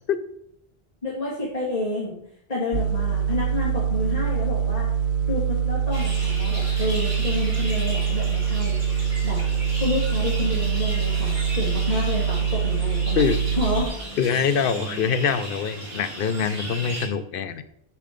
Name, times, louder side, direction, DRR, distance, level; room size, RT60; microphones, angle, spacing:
voice 1, 1.0-2.2 2.5-4.9 5.3-8.8 9.2-9.4 9.8-13.2 13.6-13.9, left 2 dB, 40° left, -8 dB, 2.1 m, -29 dB
sound 1, 2.7-13.9, right 7 dB, 60° right, 0.6 m, -24 dB
sound 2, 5.9-17.1, right 1 dB, 30° right, 2.5 m, -35 dB
voice 2, 14.2-17.6, left 7 dB, 65° left, 11 dB, 0.7 m, -24 dB
6.6 x 5.5 x 5.1 m, 0.74 s
omnidirectional pair, 1.1 m